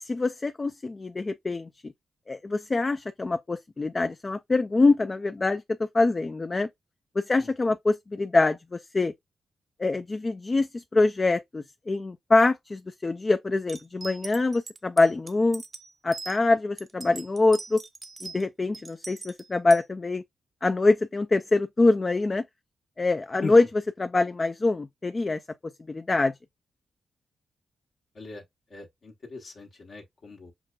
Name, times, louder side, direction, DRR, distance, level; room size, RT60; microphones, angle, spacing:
voice 1, 0.0-1.9 2.3-5.6 5.9-6.7 7.2-9.1 9.8-15.6 16.0-17.8 18.2-20.2 20.6-22.4 23.0-23.6 24.0-25.4 25.9-26.3, left 3 dB, 35° left, 0.3 m, -24 dB
voice 2, 7.4-7.8 23.4-23.5 28.1-28.4 28.7-30.5, left 4 dB, 65° left, 1.1 m, -39 dB
sound 1, 13.7-16.4 16.8-18.4 18.7-19.8, right 3 dB, 40° right, 0.6 m, -41 dB
5.9 x 2.2 x 2.3 m
cardioid pair, 55°, 0 cm